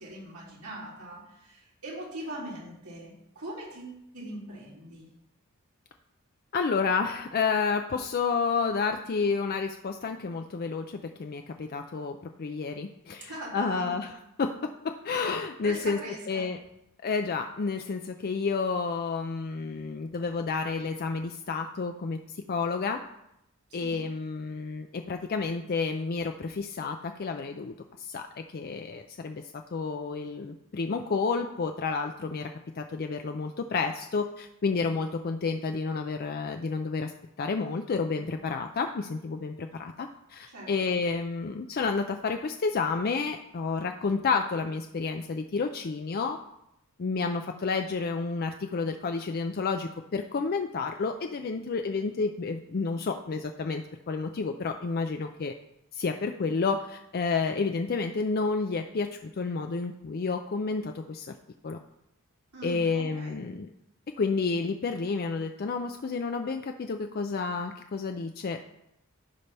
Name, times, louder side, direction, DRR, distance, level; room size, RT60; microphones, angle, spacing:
voice 1, 0.0-5.1 13.2-14.0 15.6-16.5 23.7-24.1 40.5-40.9 62.5-63.4, right 1 dB, 80° right, -5 dB, 3.4 m, -41 dB
voice 2, 6.5-14.1 14.4-14.5 14.8-16.0 16.3-16.6 17.0-23.0 23.7-27.7 28.0-29.4 29.7-32.5 32.8-37.1 37.4-46.4 47.0-55.5 55.9-61.3 61.6-61.8 62.6-63.7 64.2-68.7, left 4 dB, 45° left, 5 dB, 0.4 m, -30 dB
14.5 x 5.5 x 3.4 m, 0.82 s
head